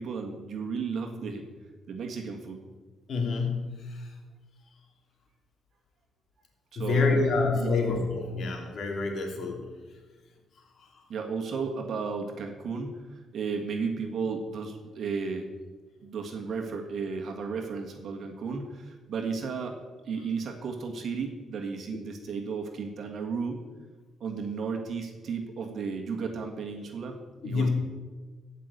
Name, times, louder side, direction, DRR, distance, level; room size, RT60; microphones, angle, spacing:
voice 1, 0.0-1.4 1.9-2.6 6.7-7.2 7.6-7.8 11.1-15.5 16.0-19.7 20.0-23.6 24.2-27.2 27.4-27.7, right 5 dB, 60° right, 2 dB, 1.7 m, -34 dB
voice 2, 3.1-4.1 6.8-9.6 27.4-27.7, left 4 dB, 60° left, 2 dB, 2.9 m, -27 dB
15.0 x 5.7 x 8.0 m, 1.3 s
cardioid pair, 90°, 0 cm